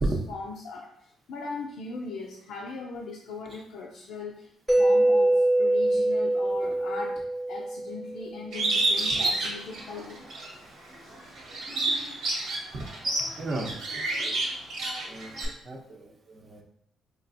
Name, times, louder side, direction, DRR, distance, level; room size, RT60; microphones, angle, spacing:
voice 1, 0.0-4.5 4.8-7.2 7.5-10.2, left 4 dB, 80° left, -1 dB, 0.4 m, -39 dB
Mallet percussion, 4.7-8.5, right 1 dB, ahead, 0.6 m, -24 dB
Bird, 8.5-10.5 10.9-15.4, right 2 dB, 85° right, 1.2 m, -29 dB
voice 2, 13.4-13.7 14.2-14.4 15.1-15.3 15.7-16.6, right 2 dB, 45° right, 1 dB, 0.7 m, -33 dB
4.5 x 2.4 x 2.6 m, 0.69 s
cardioid pair, 90°, 0 cm